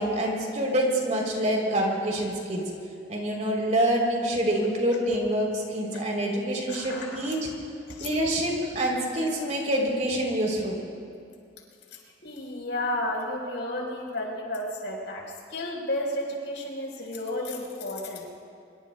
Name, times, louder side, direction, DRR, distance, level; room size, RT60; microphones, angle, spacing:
voice 1, 0.0-2.6 3.1-7.4 8.0-10.8, right 1 dB, 40° right, -1 dB, 3.2 m, -26 dB
voice 2, 6.7-7.2 7.9-8.1 11.9-15.2 15.5-18.2, left 1 dB, 75° left, -1 dB, 4.2 m, -32 dB
24.5 x 24.0 x 2.2 m, 2.4 s
head